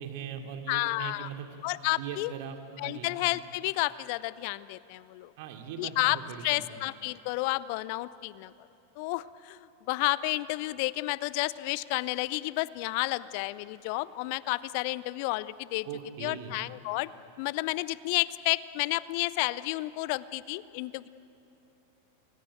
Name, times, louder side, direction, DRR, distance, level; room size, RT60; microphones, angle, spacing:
voice 1, 0.0-1.5 2.0-2.6 2.8-3.1 5.4-6.8 15.8-16.5, right 8 dB, 50° right, 4 dB, 2.7 m, -40 dB
voice 2, 0.7-1.3 1.6-2.3 2.8-5.3 5.8-8.5 9.0-15.9 16.2-17.1 17.4-21.1, left 20 dB, 45° left, 19 dB, 0.5 m, -31 dB
29.5 x 22.5 x 8.9 m, 2.9 s
figure-of-eight pair, 90°, 0 cm